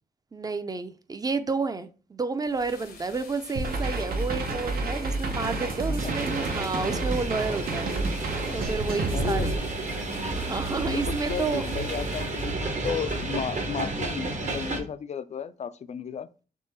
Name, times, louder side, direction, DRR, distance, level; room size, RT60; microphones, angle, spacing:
voice 1, 0.3-9.6 10.3-11.7, right 4 dB, 25° right, 0.5 m, -31 dB
sound 1, 2.4-12.9, left 5 dB, 75° left, 0.9 m, -49 dB
sound 2, 3.6-9.6, right 2 dB, 70° right, 0.7 m, -30 dB
voice 2, 5.8-6.1 9.1-9.6 10.9-16.3, left 7 dB, 45° left, 0.4 m, -34 dB
sound 3, 6.0-14.8, right 2 dB, 50° right, 1.0 m, -32 dB
3.7 x 3.0 x 4.1 m
cardioid pair, 80°, 16 cm